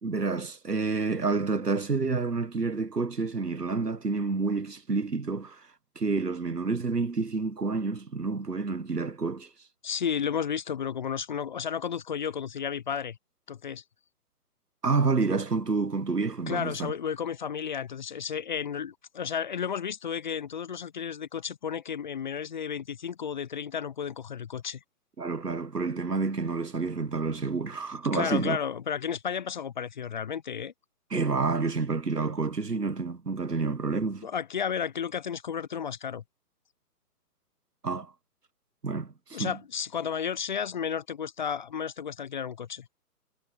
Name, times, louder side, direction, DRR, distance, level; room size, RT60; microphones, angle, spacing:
voice 1, 0.0-5.6 5.9-9.5 14.8-16.9 25.2-28.6 31.1-34.3 37.8-38.1 38.8-39.5, right 4 dB, 85° right, 1.5 m, -29 dB
voice 2, 9.8-13.2 13.5-13.8 16.5-24.8 28.1-30.7 34.2-36.2 39.3-42.9, left 7 dB, 30° left, 0.8 m, -32 dB
figure-of-eight pair, 135°, 46 cm